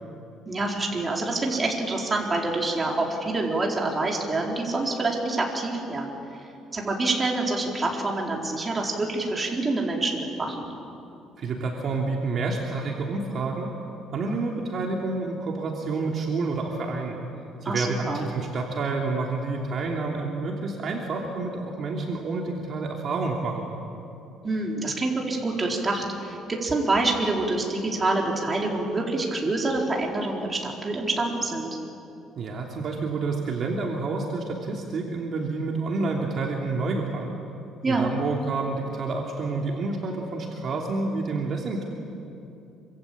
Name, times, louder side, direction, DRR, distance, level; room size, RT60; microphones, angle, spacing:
voice 1, 0.5-6.1 6.7-10.7 17.6-18.2 24.4-31.7 37.8-38.1, right 2 dB, 20° right, -1 dB, 4.3 m, -26 dB
voice 2, 11.4-13.8 14.1-17.2 17.6-23.6 32.4-37.3 37.9-41.8, right 3 dB, 45° right, -1 dB, 3.0 m, -29 dB
27.0 x 25.5 x 8.7 m, 2.8 s
cardioid pair, 145°, 0 cm